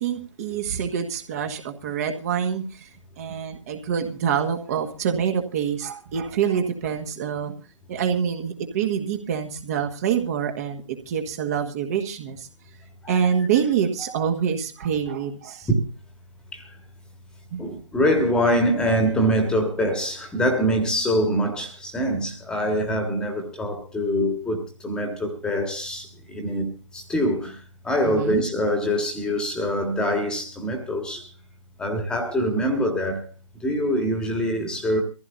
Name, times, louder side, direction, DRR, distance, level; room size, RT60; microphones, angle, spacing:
voice 1, 0.0-7.6 7.9-12.5 13.1-15.7 17.5-17.6 28.0-28.4, right 8 dB, 30° right, 1.6 m, -26 dB
voice 2, 17.6-27.6 27.8-31.3 31.8-33.3 33.6-35.0, equal, 5° left, 1.7 m, -24 dB
23.5 x 15.0 x 2.7 m
figure-of-eight pair, 140°, 17 cm